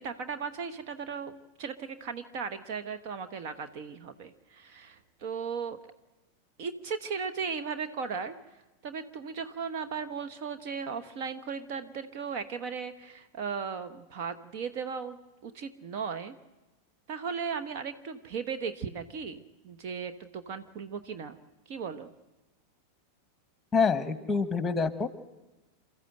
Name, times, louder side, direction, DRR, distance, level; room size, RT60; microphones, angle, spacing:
voice 1, 0.0-5.8 6.6-15.2 15.4-16.3 17.1-21.4 21.7-22.1, right 6 dB, 45° right, 7 dB, 1.1 m, -37 dB
voice 2, 23.7-25.1, left 5 dB, 10° left, 11 dB, 1.5 m, -26 dB
28.5 x 14.0 x 7.9 m, 1.0 s
figure-of-eight pair, 90°, 0 cm